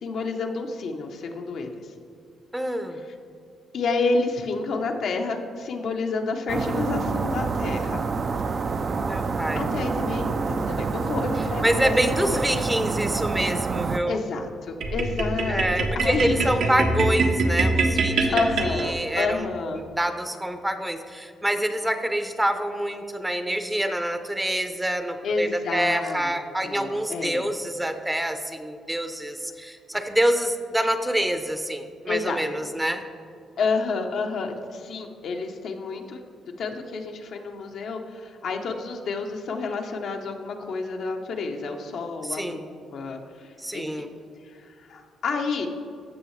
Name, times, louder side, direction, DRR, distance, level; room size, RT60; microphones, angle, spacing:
voice 1, 0.0-1.7 3.7-8.1 9.5-11.9 12.2-12.4 14.0-16.5 18.1-19.8 25.2-26.3 26.6-27.4 32.1-32.7 33.6-36.2 36.6-44.1 44.4-45.7, left 4 dB, 65° left, 3 dB, 0.9 m, -29 dB
voice 2, 2.5-3.0 9.0-9.7 11.6-14.2 15.5-19.5 19.7-33.0 42.2-42.6 43.6-44.1, right 1 dB, 10° right, 8 dB, 0.7 m, -26 dB
sound 1, 6.5-14.0, right 4 dB, 45° right, 0.4 m, -27 dB
sound 2, 14.8-19.3, right 3 dB, 80° right, 1.2 m, -24 dB
15.0 x 6.3 x 3.2 m, 2.4 s
cardioid pair, 90°, 0 cm